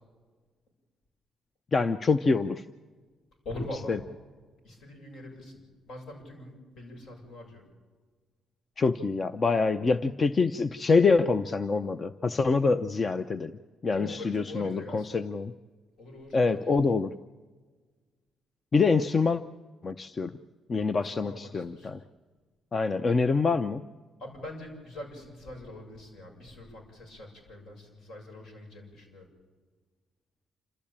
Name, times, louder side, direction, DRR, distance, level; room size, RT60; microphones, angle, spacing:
voice 1, 1.7-2.6 3.9-4.0 8.8-13.5 13.8-15.5 16.3-17.1 18.7-19.4 19.8-20.3 20.7-22.0 22.7-23.8, left 4 dB, 35° left, 12 dB, 0.6 m, -25 dB
voice 2, 3.4-4.0 4.6-5.6 5.9-7.6 13.9-15.1 16.0-16.4 16.6-16.9 20.9-21.9 24.2-29.3, left 1 dB, 70° left, 3 dB, 7.2 m, -43 dB
28.0 x 13.5 x 8.7 m, 1.4 s
cardioid pair, 90°, 0 cm